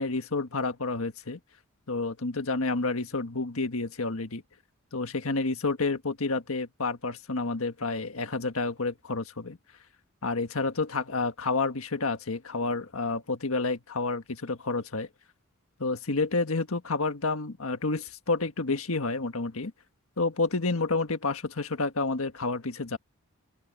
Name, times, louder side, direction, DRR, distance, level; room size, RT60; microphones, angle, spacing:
voice 1, 0.0-1.4 1.9-4.4 4.9-9.6 10.2-15.1 15.8-19.7 20.2-23.0, left 3 dB, 75° left, 1.5 m, -29 dB
open air
head